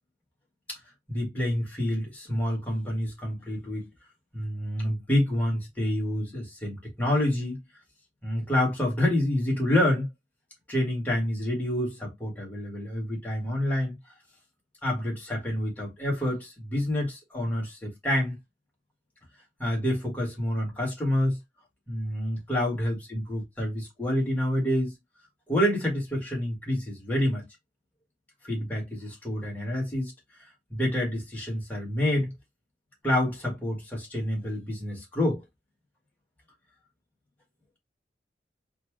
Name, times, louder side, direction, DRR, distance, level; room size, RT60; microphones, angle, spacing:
voice 1, 1.1-3.9 4.3-7.6 8.2-10.1 10.7-14.0 14.8-18.4 19.6-21.4 21.9-24.9 25.5-27.4 28.4-30.1 30.7-32.3 33.0-35.4, left 1 dB, 10° left, 1.7 m, -28 dB
4.4 x 2.3 x 3.1 m
head